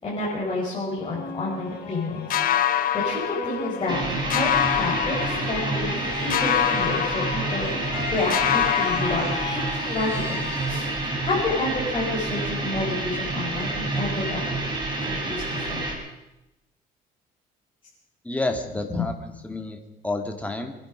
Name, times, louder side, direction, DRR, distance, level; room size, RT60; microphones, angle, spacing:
voice 1, 0.0-4.5 4.8-9.2 9.5-10.9 11.2-14.4 15.0-15.9, left 2 dB, 30° left, -7 dB, 5.1 m, -30 dB
sound 1, 1.0-12.0, left 5 dB, 80° left, 3.2 m, -36 dB
sound 2, 2.3-4.0 4.3-6.0 6.3-8.0 8.3-10.0, left 10 dB, 55° left, 1.0 m, -26 dB
sound 3, 3.9-15.9, right 2 dB, 25° right, 4.3 m, -28 dB
voice 2, 18.2-20.7, left 2 dB, 10° left, 4 dB, 2.2 m, -29 dB
24.0 x 10.5 x 5.1 m, 0.95 s
cardioid pair, 110°, 17 cm